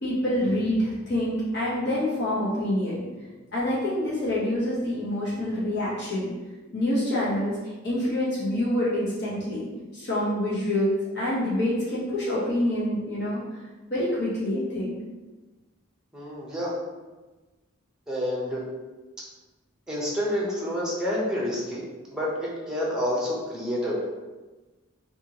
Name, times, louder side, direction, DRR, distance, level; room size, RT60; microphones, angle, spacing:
voice 1, 0.0-3.0 3.5-6.3 6.7-7.6 7.8-9.7 9.9-13.4 13.9-14.9, left 1 dB, 55° left, -8 dB, 0.9 m, -26 dB
voice 2, 16.1-16.8 18.1-18.6 19.9-21.8 22.1-23.9, left 1 dB, 5° right, -6 dB, 0.7 m, -28 dB
2.8 x 2.5 x 2.8 m, 1.2 s
head